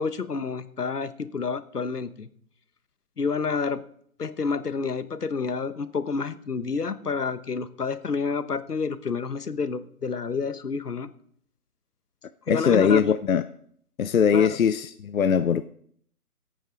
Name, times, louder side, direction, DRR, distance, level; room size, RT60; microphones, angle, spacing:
voice 1, 0.0-2.3 3.2-3.8 4.2-11.1 12.5-13.1 14.3-14.6, left 5 dB, 85° left, 1.2 m, -29 dB
voice 2, 12.5-13.4 14.0-15.6, left 7 dB, 65° left, 0.6 m, -21 dB
15.5 x 9.1 x 3.8 m
figure-of-eight pair, 155°, 45 cm